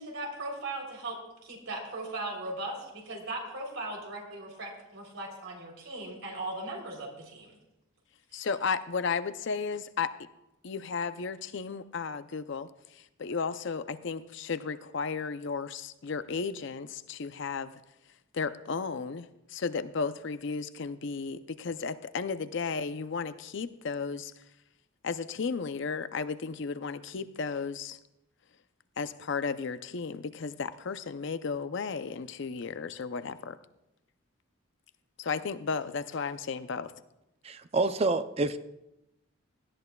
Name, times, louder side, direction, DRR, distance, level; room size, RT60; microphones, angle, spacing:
voice 1, 0.0-7.6, right 2 dB, 70° right, 1 dB, 3.3 m, -38 dB
voice 2, 8.3-10.1 10.6-17.7 18.3-24.3 25.0-28.0 29.0-33.6 35.2-36.9, left 5 dB, 60° left, 12 dB, 0.5 m, -34 dB
voice 3, 37.4-38.6, right 3 dB, 30° right, 11 dB, 0.4 m, -27 dB
17.5 x 13.0 x 2.3 m, 0.91 s
head